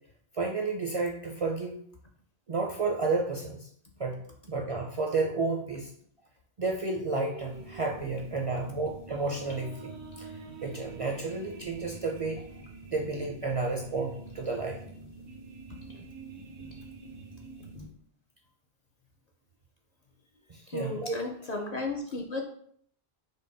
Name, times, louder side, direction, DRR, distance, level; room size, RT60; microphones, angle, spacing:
voice 1, 0.3-1.8 2.5-3.7 4.0-5.9 6.6-10.3 10.6-12.4 12.9-14.8 20.5-21.1, right 3 dB, 45° right, 0 dB, 0.4 m, -31 dB
sound 1, 7.3-17.7, right 5 dB, 85° right, 0.9 m, -50 dB
sound 2, 7.4-17.9, right 2 dB, 70° left, 1.2 m, -48 dB
voice 2, 20.7-22.4, left 3 dB, 50° left, 1 dB, 0.5 m, -34 dB
5.4 x 2.2 x 3.8 m, 0.63 s
omnidirectional pair, 1.1 m